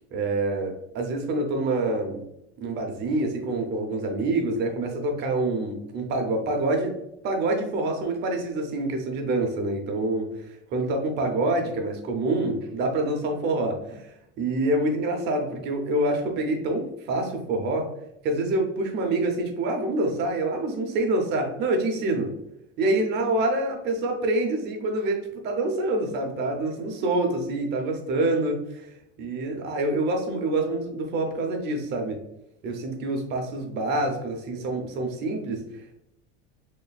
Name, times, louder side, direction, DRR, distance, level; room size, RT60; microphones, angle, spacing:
voice 1, 0.0-2.2 2.6-6.9 7.2-17.9 18.2-22.3 22.8-28.9 29.2-32.2 32.6-36.0, right 2 dB, 30° right, 3 dB, 0.7 m, -26 dB
4.1 x 3.0 x 2.3 m, 0.81 s
cardioid pair, 160°, 32 cm